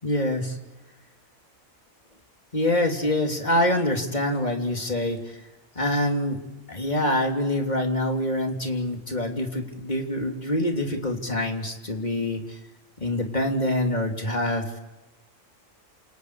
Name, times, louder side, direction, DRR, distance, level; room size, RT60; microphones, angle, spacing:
voice 1, 0.0-0.6 2.5-5.4 5.8-6.4 6.7-12.6 13.0-14.8, left 1 dB, 30° left, 2 dB, 3.5 m, -25 dB
29.5 x 28.5 x 4.9 m, 1.0 s
omnidirectional pair, 1.4 m